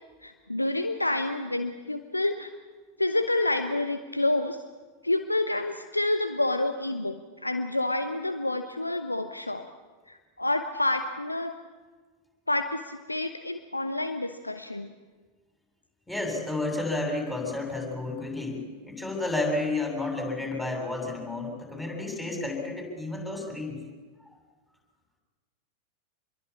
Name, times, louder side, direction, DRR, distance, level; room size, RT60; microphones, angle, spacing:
voice 1, 0.2-2.5 3.0-4.6 5.0-9.7 10.1-11.5 12.5-14.9, left 2 dB, 85° left, 9 dB, 1.0 m, -28 dB
voice 2, 16.1-23.8, left 2 dB, 10° left, 1 dB, 7.5 m, -31 dB
27.0 x 22.0 x 8.5 m, 1.4 s
figure-of-eight pair, 90°, 0 cm